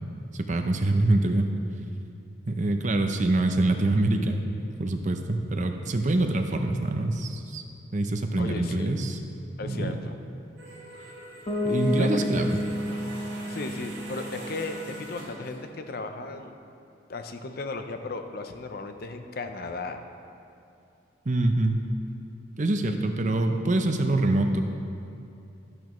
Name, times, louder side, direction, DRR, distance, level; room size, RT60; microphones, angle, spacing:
voice 1, 0.3-1.5 2.5-4.4 4.8-7.6 7.9-9.2 9.6-10.0 11.6-12.6 21.3-21.8 22.6-24.6, right 2 dB, 40° right, 5 dB, 0.6 m, -25 dB
voice 2, 8.4-8.9 9.6-10.2 12.0-12.5 13.5-16.6 17.1-20.0, left 3 dB, 50° left, 7 dB, 0.6 m, -35 dB
sound 1, 10.6-15.6, right 1 dB, 65° right, 2.1 m, -43 dB
Bass guitar, 11.5-15.3, left 1 dB, 25° left, 1.2 m, -31 dB
12.5 x 11.0 x 3.1 m, 2.7 s
head